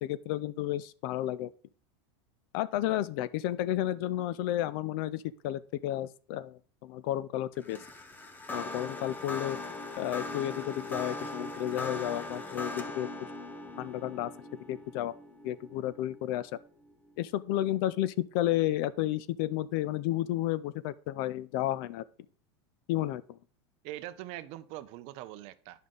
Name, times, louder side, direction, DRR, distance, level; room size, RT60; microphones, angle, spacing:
voice 1, 0.0-1.5 2.5-7.8 8.5-9.6 10.0-13.3 13.8-15.1 15.4-16.5 17.2-22.0 22.9-23.2, left 13 dB, 55° left, 0.4 m, -32 dB
sound 1, 7.6-16.9, left 2 dB, 15° left, 0.7 m, -40 dB
voice 2, 23.8-25.9, right 14 dB, 45° right, 0.6 m, -42 dB
9.5 x 5.5 x 3.7 m
supercardioid pair, 155°, 14 cm